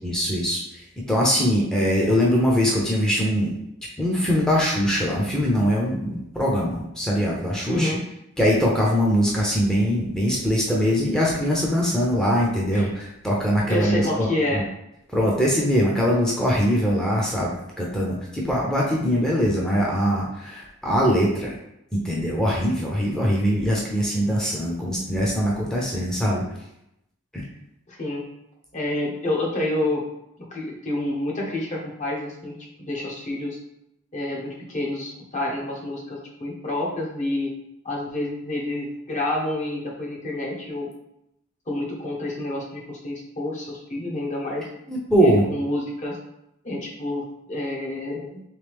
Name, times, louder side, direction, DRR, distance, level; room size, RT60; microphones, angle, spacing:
voice 1, 0.0-3.5 4.0-7.9 8.4-14.6 15.1-21.5 21.9-26.4 27.3-27.4 44.9-45.4, equal, 5° left, -4 dB, 0.7 m, -22 dB
voice 2, 7.7-8.0 12.7-12.9 13.7-14.6 27.9-28.2 28.7-30.0 30.5-33.6 34.1-37.5 37.8-40.9 41.7-44.6 45.2-46.2 46.6-48.4, left 1 dB, 40° left, -2 dB, 0.9 m, -28 dB
3.3 x 3.2 x 3.4 m, 0.81 s
head